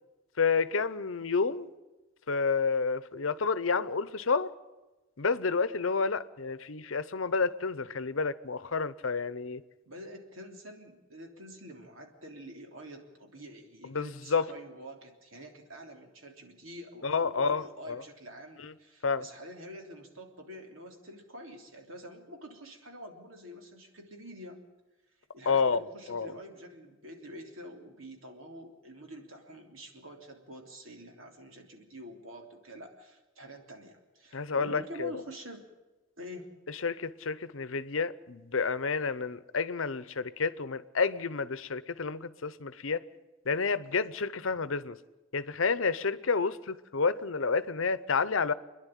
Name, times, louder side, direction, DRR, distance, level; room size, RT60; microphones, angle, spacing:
voice 1, 0.4-1.7 2.3-4.5 5.2-9.6 13.8-14.5 17.0-18.0 18.6-18.7 19.0-19.3 25.5-25.8 26.1-26.3 34.3-35.1 36.7-43.0 43.4-45.0 45.3-48.5, left 5 dB, 75° left, 0.8 m, -30 dB
voice 2, 9.8-24.6 25.3-35.7 36.2-36.5, equal, 80° right, 3.3 m, -47 dB
27.0 x 11.0 x 10.0 m
head